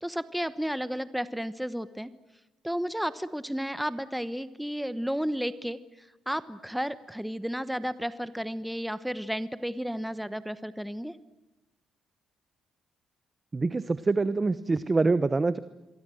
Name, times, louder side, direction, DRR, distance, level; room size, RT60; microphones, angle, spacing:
voice 1, 0.0-2.1 2.6-5.8 6.3-11.1, equal, ahead, 14 dB, 1.1 m, -32 dB
voice 2, 13.5-15.6, right 3 dB, 25° right, 14 dB, 1.0 m, -25 dB
28.0 x 23.5 x 7.8 m, 1.1 s
cardioid pair, 90°, 0 cm